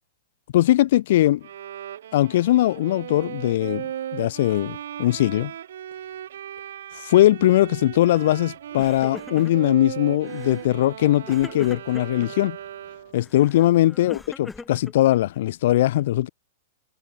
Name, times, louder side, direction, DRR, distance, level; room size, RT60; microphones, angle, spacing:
voice 1, 0.5-1.5 2.1-5.5 7.0-12.6 13.1-16.3, left 14 dB, 65° left, 0.5 m, -20 dB
Bowed string instrument, 1.4-13.3, right 10 dB, 75° right, 2.7 m, -37 dB
Crying sobbing, 8.1-8.4 8.7-9.7 10.2-10.7 11.3-12.3 13.2-15.4, left 3 dB, 10° left, 3.6 m, -41 dB
hypercardioid pair, 115°, 0 cm